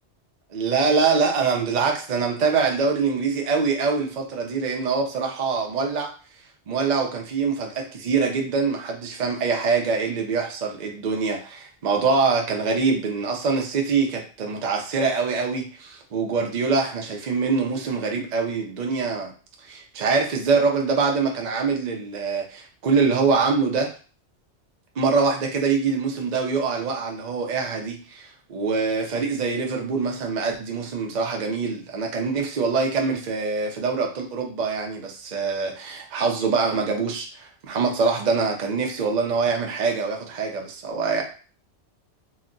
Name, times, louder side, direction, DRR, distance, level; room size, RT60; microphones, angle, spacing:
voice 1, 0.5-6.1 6.7-19.3 19.6-23.9 25.0-41.2, right 4 dB, 50° right, 1 dB, 0.6 m, -24 dB
3.9 x 2.1 x 2.5 m, 0.38 s
omnidirectional pair, 1.2 m